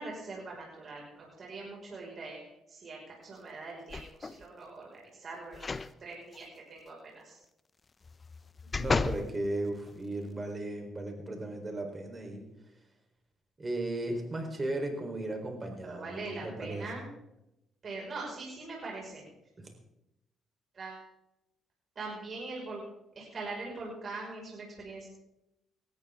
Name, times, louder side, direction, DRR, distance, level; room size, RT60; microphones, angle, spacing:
voice 1, 0.0-7.4 15.8-17.1 17.8-19.2 20.7-21.1 22.0-22.8 23.2-25.1, right 3 dB, 45° right, -2 dB, 5.6 m, -42 dB
sound 1, 3.9-4.4 5.5-5.9 6.3-6.4 8.0-9.3 9.9-10.0, left 4 dB, 30° left, 0.7 m, -33 dB
voice 2, 8.7-12.4 13.6-16.9 19.6-19.7, right 2 dB, 30° right, 4 dB, 4.1 m, -36 dB
18.5 x 13.5 x 3.7 m, 0.88 s
cardioid pair, 80°, 0 cm